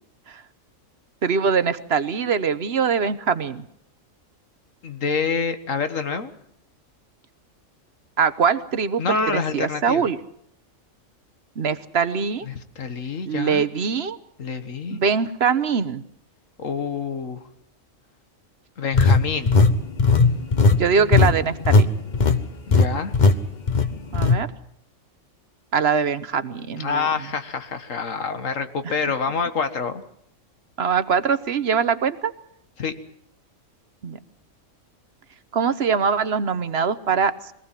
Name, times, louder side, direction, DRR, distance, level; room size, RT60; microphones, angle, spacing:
voice 1, 1.2-3.6 8.2-10.2 11.6-12.5 13.3-14.2 14.9-16.0 20.7-21.9 24.1-24.5 25.7-27.1 30.8-32.3 34.0-34.2 35.5-37.5, right 6 dB, 55° right, 13 dB, 1.2 m, -22 dB
voice 2, 4.8-6.3 9.0-10.0 12.4-13.6 14.4-15.0 16.6-17.4 18.8-19.5 22.7-23.1 26.8-30.0 32.8-32.9, left 5 dB, 75° left, 9 dB, 1.9 m, -27 dB
sound 1, 18.9-21.9 22.1-22.4 22.7-22.9 23.1-23.4 23.7-24.4, left 4 dB, 35° left, 1.3 m, -16 dB
22.5 x 18.5 x 7.5 m, 0.70 s
omnidirectional pair, 1.4 m